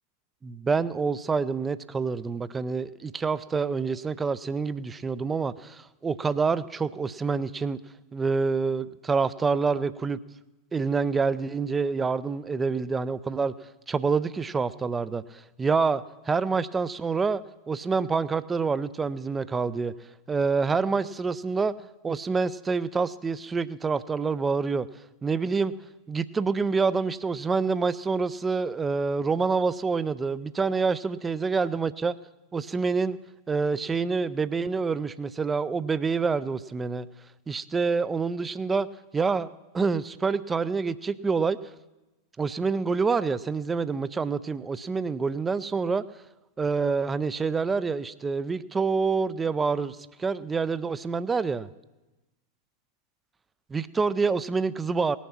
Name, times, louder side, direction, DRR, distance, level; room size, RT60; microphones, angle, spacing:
voice 1, 0.4-7.8 8.1-10.2 10.7-13.5 13.9-19.9 20.3-21.7 22.0-24.9 25.2-25.7 26.1-32.2 32.5-33.2 33.5-37.1 37.5-38.9 39.1-41.6 42.4-46.0 46.6-51.7 53.7-55.2, right 4 dB, 15° right, 16 dB, 0.4 m, -27 dB
18.5 x 7.2 x 5.9 m, 1.1 s
figure-of-eight pair, 90°, 0 cm